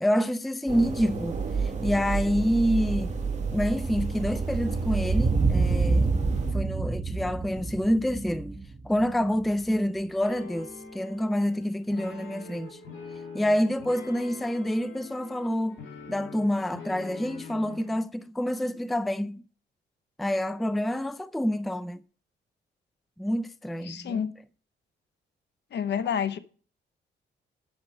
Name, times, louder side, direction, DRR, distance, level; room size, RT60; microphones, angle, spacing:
voice 1, 0.0-3.1 3.5-6.1 6.5-12.8 13.3-15.8 16.1-19.4 20.2-22.0 23.2-24.2, equal, ahead, 0.4 m, -27 dB
sound 1, 0.7-6.5, right 4 dB, 35° right, 2.0 m, -30 dB
sound 2, 5.0-9.6, right 3 dB, 20° right, 1.0 m, -27 dB
sound 3, 10.2-17.9, left 4 dB, 85° left, 3.8 m, -44 dB
voice 2, 23.8-24.3 25.7-26.4, left 8 dB, 65° left, 0.9 m, -29 dB
8.9 x 6.8 x 6.4 m
cardioid pair, 90°, 20 cm